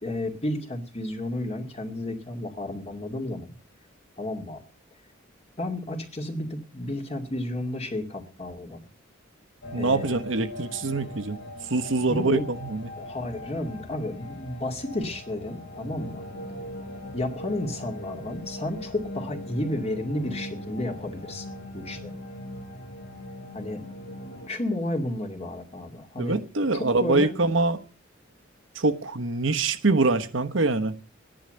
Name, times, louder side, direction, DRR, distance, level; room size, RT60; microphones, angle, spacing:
voice 1, 0.0-3.5 4.2-4.6 5.6-8.9 9.7-10.2 12.1-12.5 13.0-16.2 17.1-21.5 21.7-22.1 23.5-23.8 24.5-26.4 26.7-27.4, left 1 dB, 30° left, 2.4 m, -32 dB
sound 1, 9.6-24.5, left 1 dB, 60° left, 1.7 m, -40 dB
voice 2, 9.7-11.4 11.7-12.9 26.2-27.8 28.7-30.9, right 3 dB, 75° right, 1.2 m, -24 dB
13.5 x 10.5 x 7.7 m
head